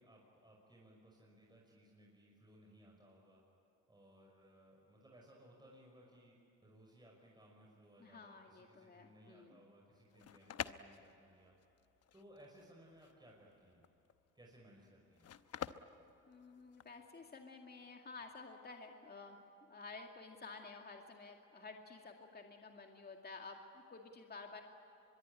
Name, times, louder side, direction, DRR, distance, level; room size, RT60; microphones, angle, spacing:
voice 1, 0.0-3.4 3.9-6.4 6.6-11.5 12.1-13.8 14.3-15.3, right 1 dB, 15° right, -2 dB, 5.7 m, -62 dB
voice 2, 8.0-9.6 16.2-19.4 19.7-24.6, left 4 dB, 30° left, 2 dB, 2.2 m, -52 dB
sound 1, 9.9-17.0, left 9 dB, 55° left, 1.0 m, -48 dB
24.0 x 22.5 x 9.9 m, 3.0 s
cardioid pair, 90°, 30 cm